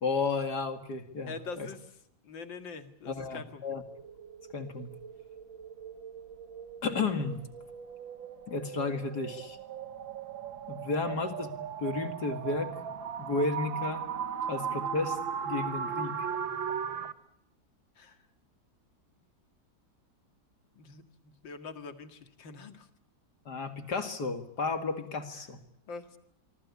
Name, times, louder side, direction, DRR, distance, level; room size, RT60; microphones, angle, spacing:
voice 1, 0.0-1.7 3.1-3.8 4.5-4.9 6.8-7.4 8.5-9.6 10.7-12.7 13.2-14.0 14.5-15.2 15.4-16.3 23.5-25.6, left 3 dB, 55° left, 8 dB, 2.6 m, -33 dB
voice 2, 1.3-1.9 2.2-3.6 18.0-18.2 20.7-22.9 25.3-25.5 25.9-26.2, left 4 dB, 75° left, 9 dB, 2.7 m, -44 dB
sound 1, 3.9-17.1, right 7 dB, 85° right, 2.2 m, -38 dB
25.0 x 24.5 x 8.4 m, 0.75 s
omnidirectional pair, 2.1 m